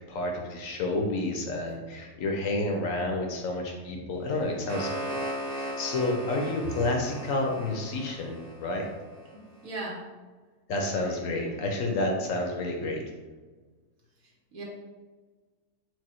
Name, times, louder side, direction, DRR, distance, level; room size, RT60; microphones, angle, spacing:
voice 1, 0.1-5.2 5.5-8.9 10.7-13.0, left 2 dB, 65° left, 1 dB, 0.9 m, -30 dB
sound 1, 4.3-9.3, equal, 45° right, 1.1 m, -37 dB
voice 2, 9.3-10.0 10.8-11.5 14.5-14.6, right 1 dB, 70° right, -4 dB, 1.5 m, -39 dB
4.7 x 2.1 x 4.2 m, 1.4 s
omnidirectional pair, 1.6 m